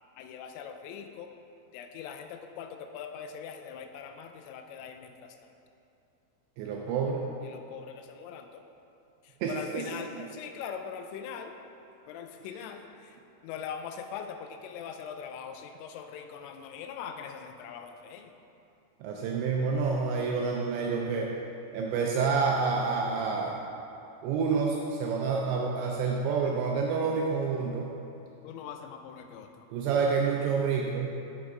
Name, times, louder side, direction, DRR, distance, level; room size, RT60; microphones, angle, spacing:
voice 1, 0.2-1.3 1.7-5.4 7.4-8.7 9.2-11.5 12.1-18.3 28.4-29.7, left 7 dB, 90° left, 6 dB, 3.2 m, -42 dB
voice 2, 6.6-7.2 9.4-9.8 19.0-21.3 21.7-23.6 24.2-27.9 29.7-31.1, right 5 dB, 85° right, -1 dB, 2.6 m, -28 dB
7.8 x 7.4 x 3.7 m, 2.7 s
omnidirectional pair, 5.6 m